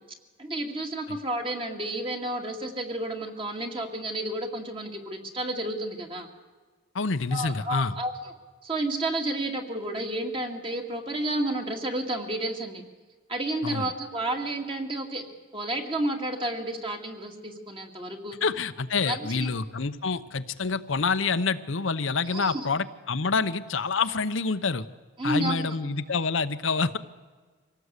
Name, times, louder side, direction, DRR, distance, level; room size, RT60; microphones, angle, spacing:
voice 1, 0.4-6.3 7.3-8.1 8.6-12.8 13.3-15.2 15.5-18.4 19.0-19.5 22.3-22.7 25.2-25.7, right 1 dB, 25° right, 3 dB, 2.3 m, -31 dB
voice 2, 6.9-7.9 13.6-13.9 18.4-24.9 25.2-27.0, left 4 dB, 75° left, 10 dB, 0.9 m, -27 dB
25.0 x 18.0 x 8.2 m, 1.4 s
head